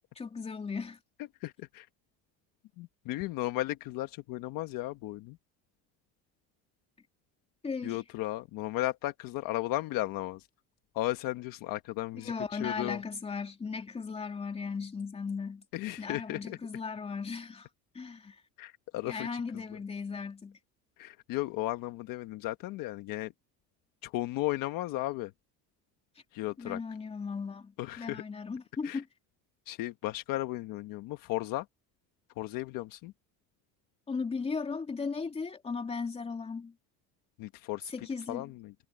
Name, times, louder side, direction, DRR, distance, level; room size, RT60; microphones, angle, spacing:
voice 1, 0.2-1.0 7.6-8.0 12.2-15.6 16.0-17.7 17.9-18.4 19.0-20.6 26.6-29.1 34.1-36.7 37.9-38.5, left 5 dB, 15° left, 3.2 m, -37 dB
voice 2, 1.4-1.9 2.8-5.4 7.8-10.5 10.9-13.0 15.7-16.6 18.6-19.6 21.0-23.3 24.0-25.3 26.3-26.8 27.8-28.2 28.8-29.0 29.7-31.7 32.4-33.1 37.4-37.9 38.3-38.7, left 17 dB, 60° left, 1.2 m, -35 dB
cardioid pair, 165°, 39 cm